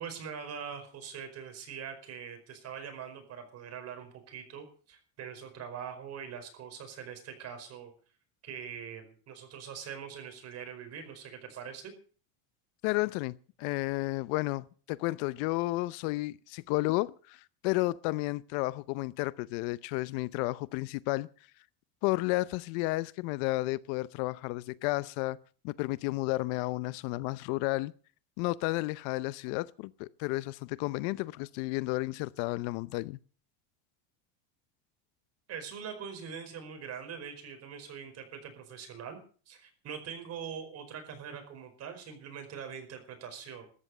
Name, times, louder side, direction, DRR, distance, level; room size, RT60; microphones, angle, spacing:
voice 1, 0.0-7.9 8.4-11.9 35.5-39.2 39.5-43.7, right 7 dB, 40° right, 5.0 m, -43 dB
voice 2, 12.8-21.3 22.0-25.4 25.6-27.9 28.4-33.2, left 21 dB, 65° left, 0.7 m, -32 dB
14.0 x 9.7 x 8.7 m
cardioid pair, 145°, 41 cm